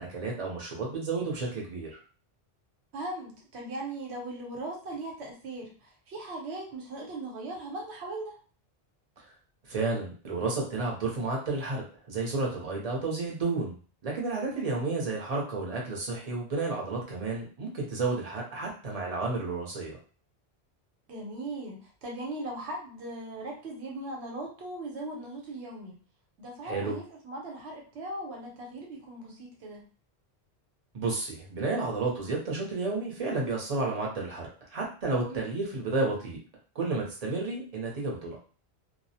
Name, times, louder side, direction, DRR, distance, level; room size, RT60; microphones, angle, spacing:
voice 1, 0.0-2.0 9.7-13.7 14.0-20.0 26.6-26.9 30.9-36.4 36.7-38.4, right 3 dB, 40° right, -1 dB, 0.7 m, -31 dB
voice 2, 2.9-8.3 14.5-14.7 21.1-25.9 26.4-29.8 35.3-35.6, right 2 dB, 90° right, -1 dB, 1.0 m, -39 dB
2.3 x 2.0 x 2.7 m, 0.39 s
omnidirectional pair, 1.1 m